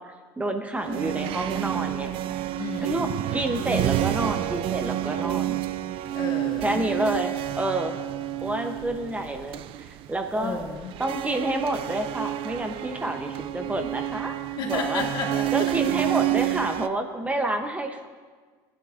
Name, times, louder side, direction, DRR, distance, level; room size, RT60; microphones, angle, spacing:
voice 1, 0.0-2.2 2.8-5.6 6.6-8.0 8.4-10.6 11.0-14.3 14.7-15.0 15.5-18.1, right 1 dB, 15° right, 4 dB, 0.8 m, -29 dB
sound 1, 0.8-16.9, right 14 dB, 60° right, 0.4 m, -29 dB
voice 2, 2.5-3.0 6.1-6.9 10.3-10.9 14.6-15.4, left 4 dB, 50° left, -1 dB, 2.3 m, -32 dB
14.0 x 9.9 x 2.5 m, 1.5 s
supercardioid pair, 105°, 10 cm